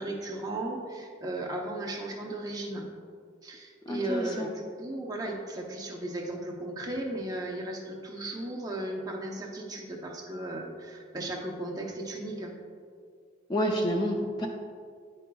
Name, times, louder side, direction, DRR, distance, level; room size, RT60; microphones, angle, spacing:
voice 1, 0.0-2.9 3.4-12.5, right 1 dB, 20° right, -1 dB, 0.7 m, -36 dB
voice 2, 3.9-4.5 13.5-14.5, equal, 20° left, 1 dB, 0.4 m, -29 dB
9.2 x 5.4 x 2.3 m, 2.1 s
head